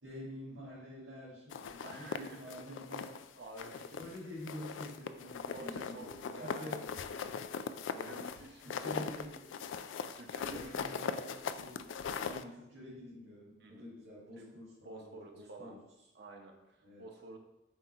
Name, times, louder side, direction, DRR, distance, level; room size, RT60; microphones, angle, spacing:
voice 1, 0.0-3.1 4.0-6.8 7.9-8.3 8.6-9.5 10.4-11.9 12.2-15.8 16.8-17.0, equal, 75° right, -8 dB, 1.9 m, -48 dB
sound 1, 1.5-3.2 3.6-4.2 4.5-12.4, left 6 dB, 75° left, 0.3 m, -40 dB
voice 2, 1.8-2.4 3.4-4.0 5.5-7.1 7.9-9.0 10.2-11.1 13.6-13.9 14.4-14.5 14.8-15.8 16.1-17.4, right 2 dB, 55° right, 2 dB, 0.9 m, -50 dB
7.6 x 2.8 x 4.6 m, 0.95 s
head